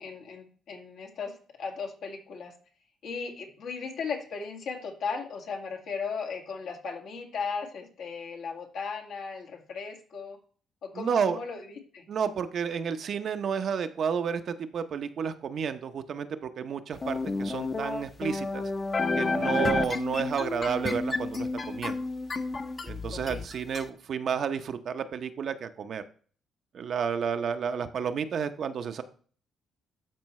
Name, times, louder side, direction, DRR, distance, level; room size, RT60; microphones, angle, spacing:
voice 1, 0.0-2.5 3.0-10.4 10.8-12.0 23.1-23.4, left 5 dB, 75° left, 0 dB, 2.0 m, -36 dB
voice 2, 10.9-11.4 12.1-18.7 19.2-22.0 22.9-26.0 26.7-29.0, right 7 dB, 60° right, 9 dB, 0.7 m, -31 dB
sound 1, 17.0-23.8, left 3 dB, 35° left, 0.8 m, -31 dB
12.0 x 4.5 x 3.1 m, 0.43 s
cardioid pair, 90°, 0 cm